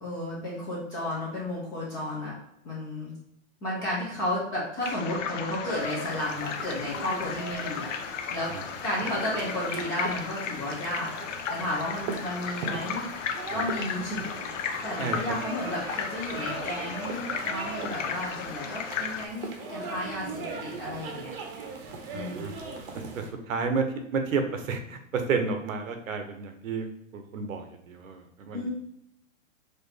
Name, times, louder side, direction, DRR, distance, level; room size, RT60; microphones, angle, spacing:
voice 1, 0.0-2.3 2.6-3.1 3.6-7.9 8.3-8.5 8.8-11.2 11.5-13.0 13.5-21.3 22.1-22.4 28.5-28.7, left 1 dB, 10° left, -6 dB, 0.4 m, -33 dB
sound 1, 4.8-19.3, left 7 dB, 70° left, 0.7 m, -35 dB
sound 2, 5.7-23.3, right 3 dB, 45° right, 0.7 m, -40 dB
voice 2, 22.1-22.5 23.1-26.9 27.1-28.7, right 5 dB, 90° right, 6 dB, 0.9 m, -31 dB
4.3 x 2.5 x 3.2 m, 0.77 s
hypercardioid pair, 145°, 39 cm